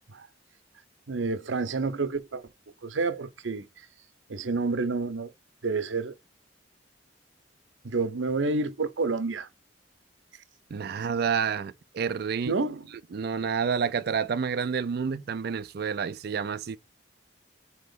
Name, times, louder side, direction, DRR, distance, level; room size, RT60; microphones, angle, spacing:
voice 1, 1.1-2.4 2.8-3.9 4.3-5.3 5.6-6.1 7.8-9.5 12.4-12.9, right 3 dB, 90° right, 0.7 m, -29 dB
voice 2, 10.7-12.5 13.1-16.8, right 6 dB, 55° right, 0.4 m, -29 dB
4.5 x 3.0 x 3.9 m
head